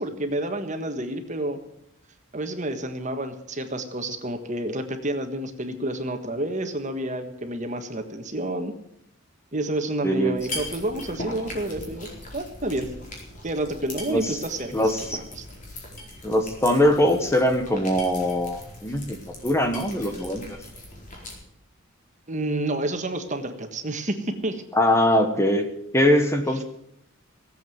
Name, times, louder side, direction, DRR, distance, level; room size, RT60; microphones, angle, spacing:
voice 1, 0.0-1.6 2.3-8.7 9.5-12.1 12.3-12.9 13.4-14.7 15.1-15.5 22.3-24.6, right 1 dB, 35° right, 6 dB, 1.5 m, -29 dB
voice 2, 10.0-10.3 14.1-14.4 14.7-15.2 16.2-19.2 19.4-20.4 24.7-25.7 25.9-26.6, left 1 dB, 15° left, 6 dB, 1.2 m, -22 dB
sound 1, 10.3-21.4, left 1 dB, 35° left, 4.5 m, -40 dB
17.5 x 8.0 x 9.3 m, 0.79 s
head